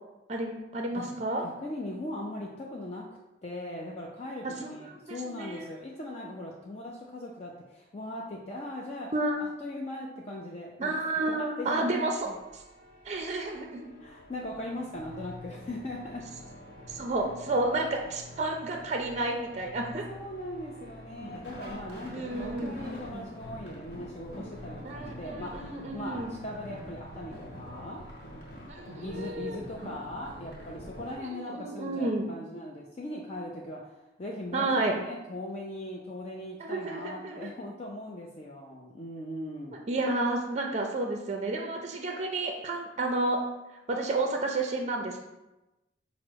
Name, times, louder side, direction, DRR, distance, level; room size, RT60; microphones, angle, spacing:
voice 1, 0.3-1.4 5.1-5.7 9.1-9.4 10.8-12.3 13.1-13.8 16.9-20.1 22.1-22.8 24.8-26.3 28.7-30.0 31.3-32.3 34.5-35.0 36.6-37.5 39.9-43.4 43.9-45.2, right 2 dB, 35° right, 3 dB, 0.4 m, -31 dB
voice 2, 1.4-3.1 3.4-9.1 9.6-11.0 11.3-11.9 12.3-12.4 14.0-16.2 20.1-28.0 29.0-33.9 34.2-39.8, left 1 dB, 35° left, -2 dB, 0.4 m, -39 dB
sound 1, 12.2-31.1, equal, 55° left, 1.3 m, -45 dB
4.9 x 2.0 x 4.5 m, 1.0 s
head